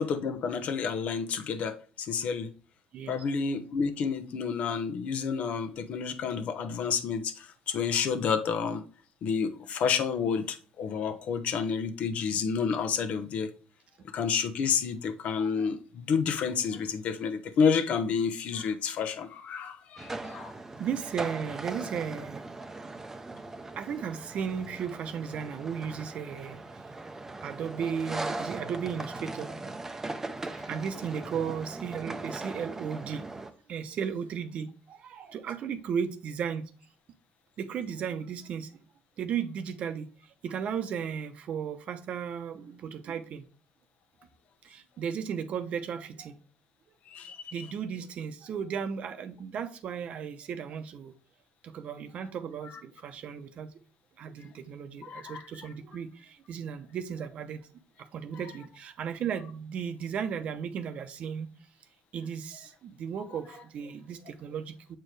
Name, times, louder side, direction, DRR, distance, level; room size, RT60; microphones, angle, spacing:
voice 1, 0.0-2.5 3.1-8.8 9.2-13.5 14.1-20.5 30.5-30.7 47.1-47.5 55.0-55.7, left 6 dB, 60° left, 1.0 m, -30 dB
voice 2, 2.9-3.2 20.8-22.4 23.8-27.1 27.4-29.8 30.4-33.2 33.7-36.6 37.6-38.7 39.2-43.5 44.6-46.4 47.5-51.1 51.6-53.7 54.2-57.7 58.0-61.5 62.1-65.0, right 7 dB, 55° right, 0.8 m, -35 dB
sound 1, 20.0-33.5, right 2 dB, 15° right, 0.7 m, -39 dB
7.8 x 4.5 x 3.3 m
cardioid pair, 100°, 3 cm